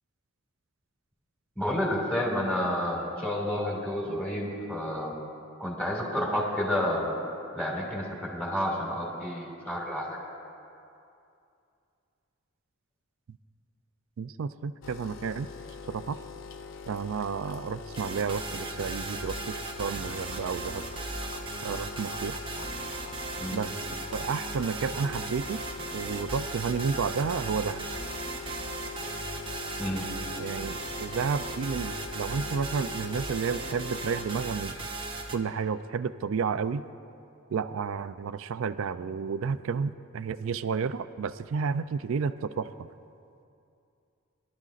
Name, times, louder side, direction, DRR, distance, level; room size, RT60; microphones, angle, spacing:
voice 1, 1.6-5.1 5.6-7.1 7.5-10.2 23.4-23.6 29.8-30.0, left 1 dB, 5° left, -3 dB, 2.3 m, -30 dB
voice 2, 14.2-15.5 15.9-16.2 16.9-20.8 21.6-22.4 23.5-23.7 24.1-25.6 25.9-27.9 30.4-34.9 35.3-36.8 37.5-42.9, right 5 dB, 65° right, 13 dB, 0.4 m, -31 dB
sound 1, 14.8-34.4, left 5 dB, 70° left, 0.6 m, -42 dB
sound 2, 17.9-35.4, right 3 dB, 25° right, 0.8 m, -37 dB
22.5 x 12.0 x 2.5 m, 2.6 s
head